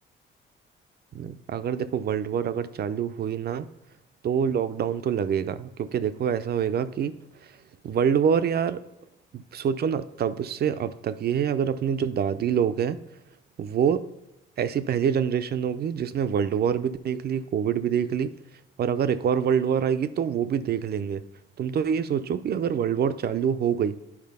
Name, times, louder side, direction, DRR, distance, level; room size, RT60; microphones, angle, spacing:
voice 1, 1.1-3.7 4.2-7.2 7.4-7.5 7.8-8.8 9.3-13.0 13.6-14.1 14.6-18.3 18.8-21.2 21.6-24.0, right 8 dB, 55° right, 12 dB, 0.5 m, -26 dB
9.7 x 4.2 x 5.5 m, 0.89 s
cardioid pair, 90°, 20 cm